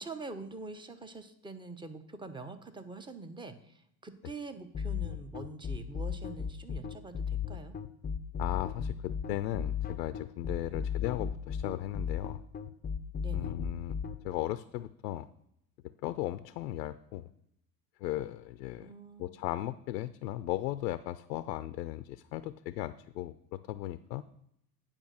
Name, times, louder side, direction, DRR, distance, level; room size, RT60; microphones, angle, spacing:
voice 1, 0.0-7.7 10.7-10.9 13.2-13.6 18.8-19.3, right 3 dB, 10° right, 9 dB, 0.8 m, -45 dB
sound 1, 4.7-14.2, left 7 dB, 20° left, 0.5 m, -35 dB
voice 2, 8.4-12.4 13.3-13.9 14.2-15.3 16.0-17.3 18.0-18.9 19.2-24.2, left 15 dB, 75° left, 13 dB, 0.6 m, -36 dB
8.9 x 5.1 x 6.3 m, 0.75 s
hypercardioid pair, 80°, 50 cm